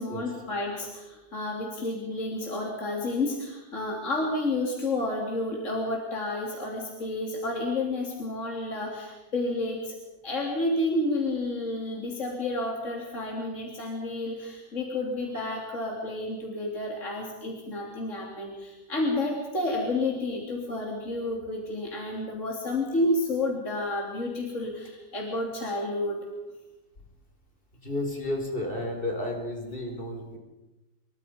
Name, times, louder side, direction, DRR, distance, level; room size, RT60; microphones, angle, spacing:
voice 1, 0.0-10.0 10.2-26.3, left 2 dB, 45° left, -1 dB, 3.5 m, -30 dB
voice 2, 27.8-30.4, left 1 dB, 30° left, 2 dB, 5.1 m, -32 dB
28.0 x 23.5 x 5.3 m, 1.1 s
omnidirectional pair, 1.8 m